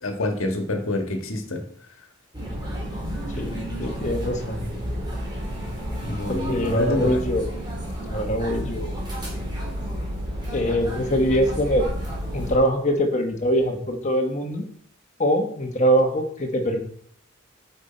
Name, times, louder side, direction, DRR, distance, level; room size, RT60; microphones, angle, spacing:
voice 1, 0.0-1.6 6.0-7.2, left 1 dB, 70° left, 4 dB, 1.5 m, -27 dB
sound 1, 2.3-12.5, equal, 20° right, 3.0 m, -31 dB
voice 2, 3.3-4.6 6.3-7.5 8.1-9.0 10.5-11.9 12.3-14.6 15.2-16.8, equal, 35° left, 4 dB, 1.3 m, -23 dB
7.9 x 6.8 x 4.4 m, 0.63 s
head